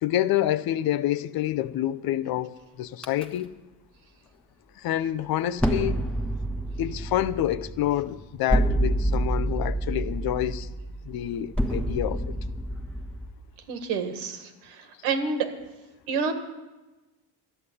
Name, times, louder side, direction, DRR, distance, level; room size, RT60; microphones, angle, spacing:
voice 1, 0.0-3.5 4.8-6.1 6.8-10.7 11.0-12.4 15.0-15.1, left 12 dB, 50° left, 0.7 m, -28 dB
sound 1, 3.0-3.3 5.6-13.3, right 1 dB, ahead, 1.3 m, -28 dB
voice 2, 13.7-15.5 16.1-16.3, right 5 dB, 85° right, 1.9 m, -28 dB
12.0 x 7.9 x 9.7 m
supercardioid pair, 100°, 47 cm